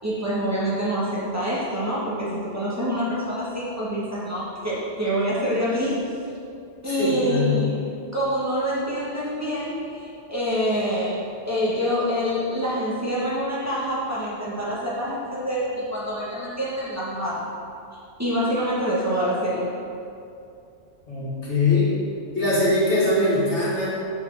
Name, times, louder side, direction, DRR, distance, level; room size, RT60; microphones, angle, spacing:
voice 1, 0.0-6.1 6.8-7.8 8.1-17.5 18.2-19.7, equal, 15° right, -8 dB, 1.7 m, -26 dB
voice 2, 6.8-7.6 21.1-21.9 22.3-23.9, left 2 dB, 65° left, -8 dB, 2.5 m, -22 dB
6.6 x 4.9 x 6.9 m, 2.6 s
omnidirectional pair, 1.2 m